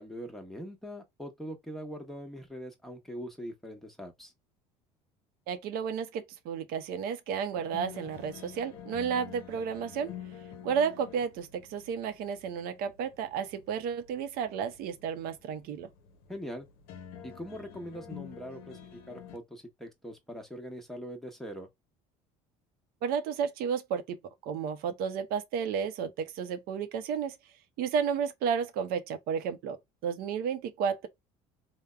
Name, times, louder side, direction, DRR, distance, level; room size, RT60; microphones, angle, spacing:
voice 1, 0.0-4.3 16.3-16.7 17.2-21.7, equal, ahead, 1.0 m, -42 dB
voice 2, 5.5-10.1 10.6-15.9 23.0-24.2 24.5-27.4 27.8-29.8 30.0-31.1, right 7 dB, 60° right, 0.6 m, -32 dB
sound 1, 7.5-19.4, left 9 dB, 65° left, 0.6 m, -48 dB
3.3 x 2.1 x 2.3 m
hypercardioid pair, 75°, 17 cm